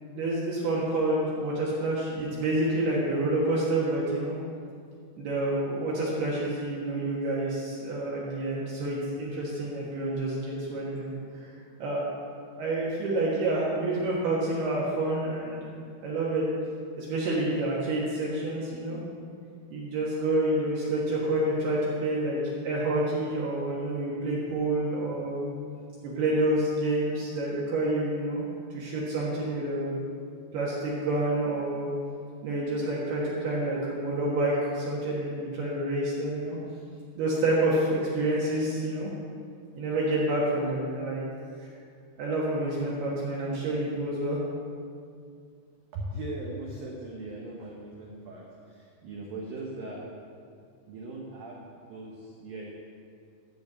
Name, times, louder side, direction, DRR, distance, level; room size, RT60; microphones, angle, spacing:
voice 1, 0.1-4.4 5.2-11.5 11.8-12.0 12.6-15.7 16.0-16.5 17.0-19.0 19.7-25.4 26.0-28.5 28.7-30.1 30.5-31.9 32.4-36.6 37.2-39.1 39.8-41.2 41.6-41.7 42.2-44.4, right 1 dB, 65° right, -6 dB, 3.0 m, -28 dB
voice 2, 45.9-50.1 50.8-52.7, right 2 dB, 85° right, -2 dB, 2.0 m, -39 dB
13.5 x 4.6 x 7.9 m, 2.3 s
omnidirectional pair, 5.7 m